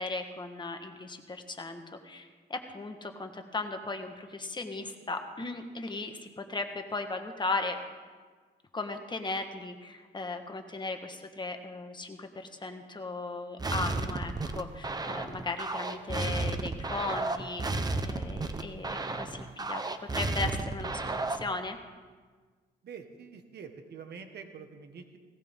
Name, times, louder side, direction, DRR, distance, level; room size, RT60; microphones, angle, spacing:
voice 1, 0.0-7.7 8.7-19.8 20.1-21.8, left 3 dB, 25° left, 5 dB, 1.4 m, -37 dB
sound 1, 13.6-21.5, right 2 dB, 20° right, 1.0 m, -33 dB
voice 2, 22.8-25.2, right 6 dB, 65° right, 6 dB, 1.6 m, -46 dB
18.0 x 18.0 x 3.7 m, 1.5 s
cardioid pair, 105°, 18 cm